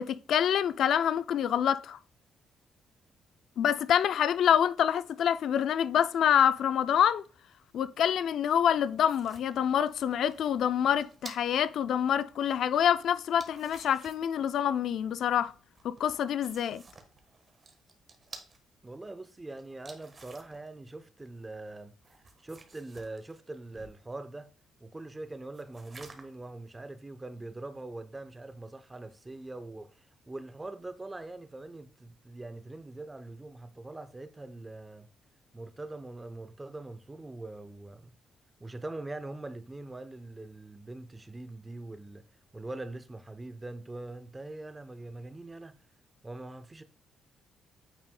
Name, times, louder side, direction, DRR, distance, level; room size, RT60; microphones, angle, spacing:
voice 1, 0.0-2.0 3.6-7.2 7.7-15.5 15.8-16.8, left 9 dB, 70° left, 0.3 m, -26 dB
sound 1, 8.6-11.7 13.2-14.4 15.7-18.6 19.6-20.7 22.0-24.0 25.5-26.4, right 3 dB, 35° right, 1.3 m, -52 dB
voice 2, 18.8-24.5 24.8-35.1 35.5-38.1 38.6-42.2 42.5-45.8 46.2-46.8, right 2 dB, 20° right, 0.7 m, -43 dB
8.9 x 4.7 x 2.2 m
cardioid pair, 90°, 0 cm